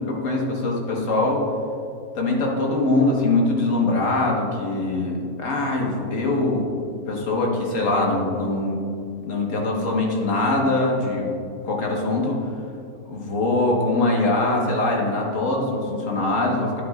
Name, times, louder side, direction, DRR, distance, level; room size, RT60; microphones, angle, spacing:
voice 1, 0.1-1.4 2.1-6.8 7.1-8.8 9.2-11.3 11.6-12.5 13.0-16.8, left 2 dB, 60° left, -1 dB, 1.6 m, -22 dB
11.0 x 8.6 x 2.4 m, 2.5 s
omnidirectional pair, 1.5 m